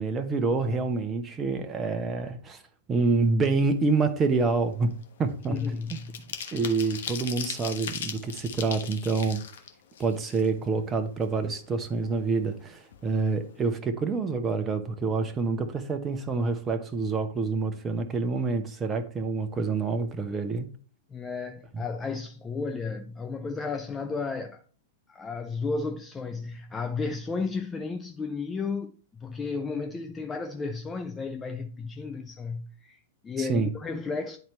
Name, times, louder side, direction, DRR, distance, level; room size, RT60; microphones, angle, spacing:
voice 1, 0.0-2.6 2.9-4.9 5.2-5.5 5.9-6.0 6.5-9.4 10.0-20.7 21.7-21.8 33.4-33.7, right 4 dB, 20° right, 0.9 m, -27 dB
sound 1, 3.8-4.1 4.4-10.8 11.2-11.3 11.6-12.6 12.9-13.1 13.4-13.7, left 7 dB, 60° left, 1.0 m, -39 dB
voice 2, 5.5-6.2 21.1-24.6 25.1-34.4, left 4 dB, 15° left, 0.5 m, -33 dB
10.5 x 4.3 x 3.2 m
figure-of-eight pair, 100°, 0 cm